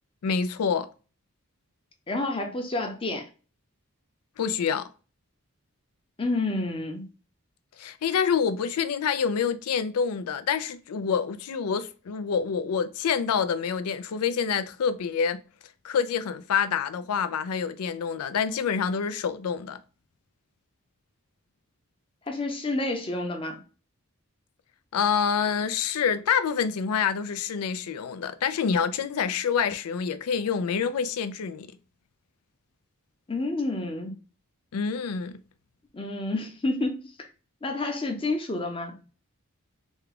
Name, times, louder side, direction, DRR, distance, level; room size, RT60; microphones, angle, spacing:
voice 1, 0.2-0.9 4.4-4.9 7.8-15.4 15.8-19.8 24.9-31.7 34.7-35.4, left 6 dB, 85° left, 0.4 m, -27 dB
voice 2, 2.1-3.3 6.2-7.1 22.3-23.6 33.3-34.1 35.9-37.3 37.6-39.0, left 2 dB, 25° left, 0.7 m, -29 dB
3.5 x 2.3 x 3.3 m
head